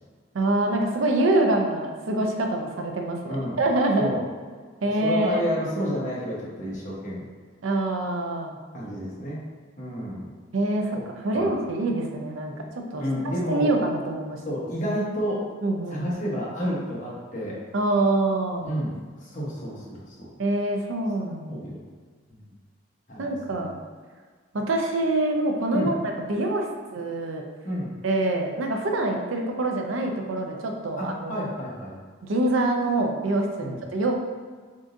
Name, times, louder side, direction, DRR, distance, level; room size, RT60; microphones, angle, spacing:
voice 1, 0.3-4.1 4.8-5.4 7.6-8.6 10.5-10.9 11.2-12.5 12.9-14.4 15.6-16.1 17.7-18.7 20.4-21.7 23.2-23.7 24.5-26.7 26.9-27.4 28.0-31.5 32.2-34.1, right 2 dB, 85° right, 2 dB, 0.5 m, -25 dB
voice 2, 3.2-3.6 4.0-4.2 5.0-7.2 8.7-9.4 9.8-10.3 11.3-11.5 13.0-13.7 14.4-15.4 15.9-17.6 18.6-18.9 19.2-20.2 21.5-21.8 22.3-22.4 23.1-23.7 25.7-25.9 27.6-27.9 31.0-32.0 33.6-33.8, equal, 40° left, -6 dB, 1.0 m, -30 dB
3.9 x 3.7 x 2.5 m, 1.5 s
head